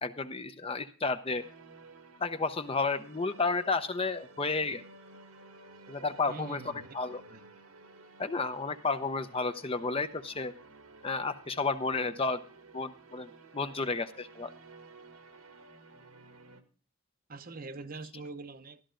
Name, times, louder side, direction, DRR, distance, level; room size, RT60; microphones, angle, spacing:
voice 1, 0.0-1.4 2.2-4.8 5.9-6.6 6.9-7.2 8.2-10.5 11.0-12.4 12.7-14.5, left 3 dB, 25° left, 0.8 m, -32 dB
sound 1, 1.3-16.6, right 3 dB, 90° right, 1.8 m, -54 dB
voice 2, 6.3-6.9 7.3-7.4 17.3-18.8, right 3 dB, 40° right, 0.8 m, -43 dB
13.5 x 12.5 x 3.8 m
head